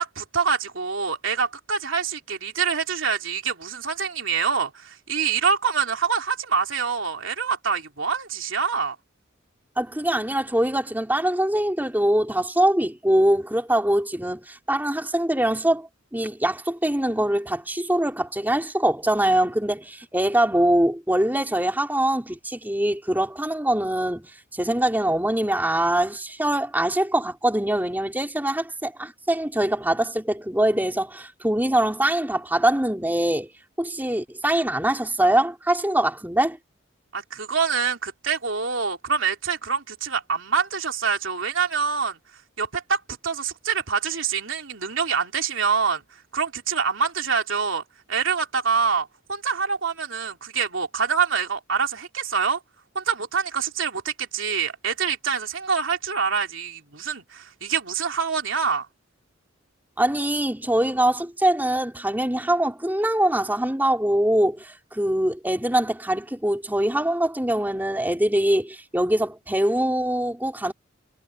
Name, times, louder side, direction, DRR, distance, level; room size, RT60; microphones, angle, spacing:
voice 1, 0.0-8.9 37.1-42.2 42.6-46.0 46.3-47.8 48.1-52.6 52.9-58.9, right 6 dB, 70° right, 3.4 m, -25 dB
voice 2, 9.8-33.5 33.8-36.6 60.0-70.7, right 1 dB, 10° right, 3.4 m, -23 dB
head